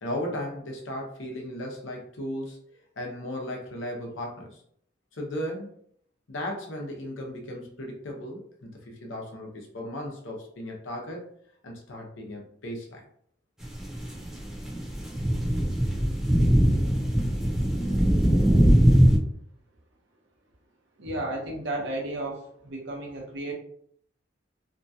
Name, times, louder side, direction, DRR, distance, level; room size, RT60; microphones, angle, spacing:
voice 1, 0.0-2.6 3.0-4.6 5.1-5.7 6.3-11.3 11.6-13.0, left 1 dB, 85° left, 0 dB, 0.8 m, -36 dB
sound 1, 13.6-19.2, equal, 5° right, 0.8 m, -21 dB
voice 2, 21.0-23.5, right 1 dB, 70° right, -2 dB, 0.9 m, -33 dB
2.9 x 2.4 x 2.7 m, 0.65 s
head